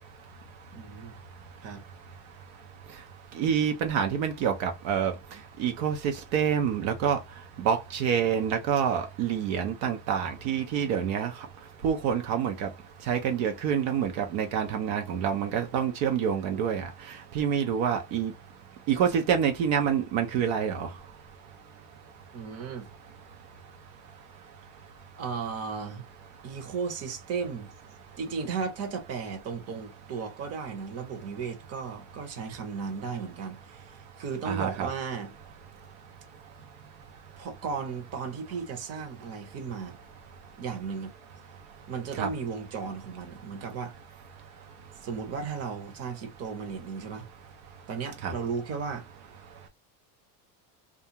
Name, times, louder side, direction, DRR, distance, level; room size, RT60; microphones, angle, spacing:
voice 1, 0.7-1.2 1.6-1.8 22.3-22.9 25.2-26.0 26.4-27.7 28.2-35.3 37.4-40.0 40.6-41.1 41.9-43.9 45.0-47.3 47.9-49.1, right 5 dB, 35° right, 0.8 m, -35 dB
voice 2, 3.4-5.1 5.6-7.2 7.6-11.3 11.8-12.7 13.1-16.9 17.3-18.3 18.9-20.9 34.4-34.9 42.2-42.3 48.2-48.3, right 8 dB, 65° right, 0.7 m, -27 dB
2.4 x 2.3 x 2.8 m
supercardioid pair, 125°, 45 cm